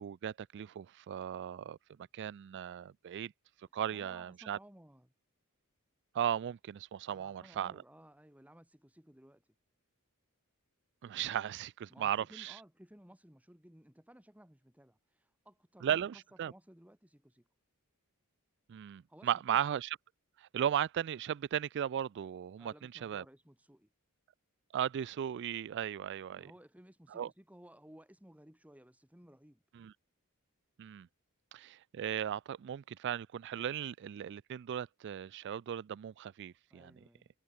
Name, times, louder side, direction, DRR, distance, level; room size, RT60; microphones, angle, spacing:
voice 1, 0.0-1.8 2.1-3.3 3.7-4.6 6.1-7.7 11.0-12.5 15.8-16.5 18.7-19.9 20.4-23.2 24.7-26.5 27.1-27.3 29.8-29.9 30.8-31.1 31.5-36.9, right 9 dB, 55° right, 0.3 m, -36 dB
voice 2, 3.7-5.1 7.1-9.4 11.9-17.5 19.1-19.6 22.6-23.9 26.3-29.6 36.7-37.3, equal, 5° right, 2.4 m, -58 dB
head